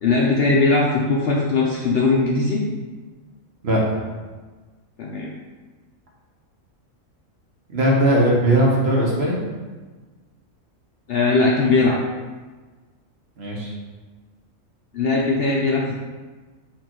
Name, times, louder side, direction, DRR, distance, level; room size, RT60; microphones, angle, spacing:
voice 1, 0.0-2.6 5.0-5.3 11.1-12.0 14.9-16.0, left 3 dB, 65° left, -2 dB, 0.6 m, -19 dB
voice 2, 3.6-4.0 7.7-9.4 13.4-13.7, right 1 dB, 55° right, -3 dB, 1.2 m, -19 dB
4.4 x 2.6 x 4.3 m, 1.3 s
omnidirectional pair, 1.4 m